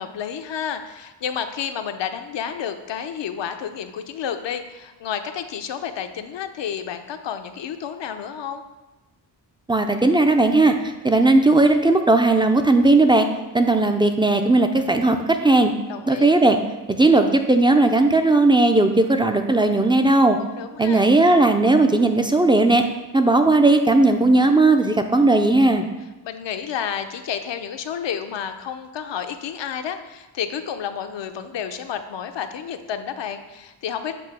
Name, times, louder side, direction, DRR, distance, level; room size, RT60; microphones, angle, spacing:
voice 1, 0.0-8.6 15.9-16.3 20.4-21.1 26.2-34.1, left 8 dB, 80° left, 7 dB, 0.6 m, -30 dB
voice 2, 9.7-10.7 11.0-13.3 13.5-15.7 16.1-16.6 16.9-20.4 20.8-22.8 23.1-25.9, right 2 dB, 10° right, 6 dB, 0.3 m, -17 dB
7.8 x 2.7 x 6.0 m, 1.1 s
wide cardioid pair, 115°, 43 cm